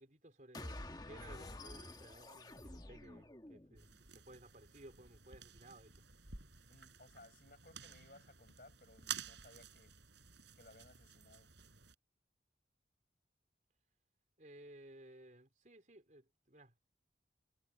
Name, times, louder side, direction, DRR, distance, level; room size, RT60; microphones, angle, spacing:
voice 1, 0.0-6.0 14.4-16.8, right 1 dB, 45° right, 4.0 m, -58 dB
sound 1, 0.5-3.9, left 1 dB, 20° left, 1.2 m, -50 dB
sound 2, 3.8-12.0, right 8 dB, 75° right, 6.1 m, -51 dB
voice 2, 6.7-9.9 10.6-11.5, left 2 dB, 50° left, 7.3 m, -61 dB
head